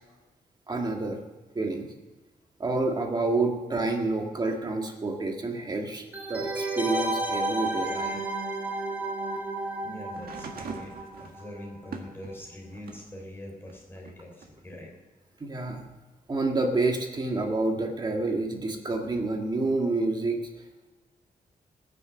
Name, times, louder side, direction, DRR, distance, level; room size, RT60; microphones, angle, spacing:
voice 1, 0.7-1.2 1.6-1.9 2.6-8.2 15.4-15.8 16.3-20.6, right 2 dB, 30° right, 2 dB, 1.7 m, -28 dB
sound 1, 6.1-11.6 11.9-12.0, right 2 dB, 10° right, 1.7 m, -32 dB
voice 2, 9.8-14.9, left 1 dB, 15° left, -2 dB, 3.4 m, -43 dB
sound 2, 10.1-13.1 13.6-14.8 15.8-15.9, right 5 dB, 80° right, 1.6 m, -43 dB
19.5 x 7.0 x 7.0 m, 1.1 s
wide cardioid pair, 180°, 15 cm